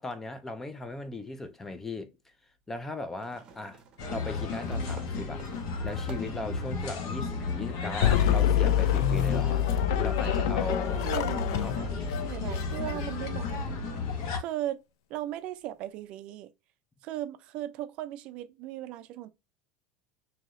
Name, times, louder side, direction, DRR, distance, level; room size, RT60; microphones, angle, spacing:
voice 1, 0.0-2.2 2.7-3.8 4.1-5.5 5.8-11.0 11.6-11.8, left 2 dB, 15° left, 0.4 m, -38 dB
sound 1, 1.2-1.3 3.2-6.5, right 5 dB, 35° right, 0.7 m, -50 dB
sound 2, 4.0-14.4, left 4 dB, 65° left, 1.2 m, -33 dB
sound 3, 8.0-13.5, left 10 dB, 80° left, 0.4 m, -27 dB
voice 2, 10.9-12.0 12.2-13.9 14.4-14.8 15.1-16.5 17.0-19.3, right 13 dB, 50° right, 0.3 m, -37 dB
3.0 x 2.7 x 2.6 m
supercardioid pair, 130°, 2 cm